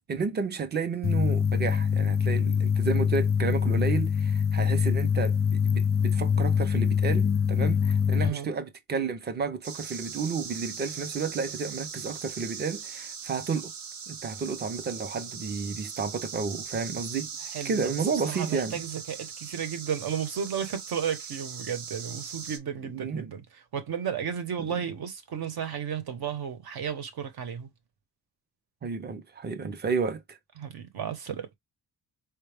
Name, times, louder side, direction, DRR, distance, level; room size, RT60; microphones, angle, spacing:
voice 1, 0.0-13.7 14.1-17.3 17.6-18.8 22.8-23.3 28.8-30.4, right 5 dB, 25° right, 0.5 m, -31 dB
sound 1, 1.0-8.3, left 7 dB, 25° left, 0.4 m, -24 dB
sound 2, 9.6-22.6, right 6 dB, 85° right, 1.0 m, -40 dB
voice 2, 17.5-17.9 18.3-23.4 23.7-27.7 30.6-31.5, right 8 dB, 65° right, 1.0 m, -33 dB
4.7 x 2.2 x 3.3 m
wide cardioid pair, 180°, 40 cm